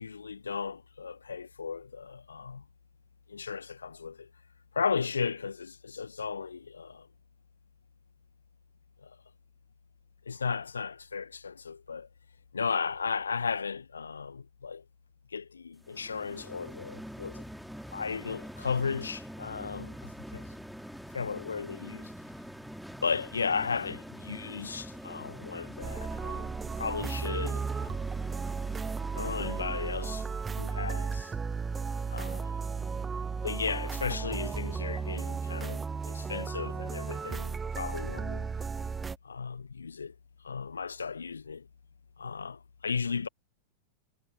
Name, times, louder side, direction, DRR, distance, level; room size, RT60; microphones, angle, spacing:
voice 1, 0.0-2.6 3.3-4.3 4.7-7.1 9.0-9.2 10.2-12.1 12.5-14.8 15.3-17.4 17.9-20.5 21.1-22.1 23.0-28.0 29.1-31.3 32.1-32.5 33.4-38.5 39.2-40.1 40.4-41.7 42.2-43.3, left 5 dB, 75° left, 1.4 m, -35 dB
sound 1, 15.8-30.4, equal, ahead, 2.7 m, -45 dB
sound 2, 25.8-39.2, right 5 dB, 15° right, 0.4 m, -34 dB
figure-of-eight pair, 90°, 0 cm